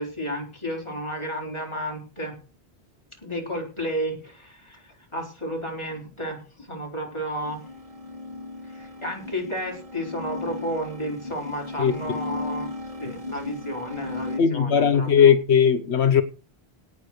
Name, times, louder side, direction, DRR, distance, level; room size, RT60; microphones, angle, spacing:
voice 1, 0.0-2.3 3.2-7.6 8.7-12.7 13.0-15.3, equal, 25° left, 4.6 m, -32 dB
sound 1, 7.3-14.4, left 3 dB, 30° right, 2.3 m, -36 dB
voice 2, 14.4-16.2, left 7 dB, 85° left, 1.2 m, -18 dB
17.5 x 6.1 x 6.5 m
omnidirectional pair, 1.1 m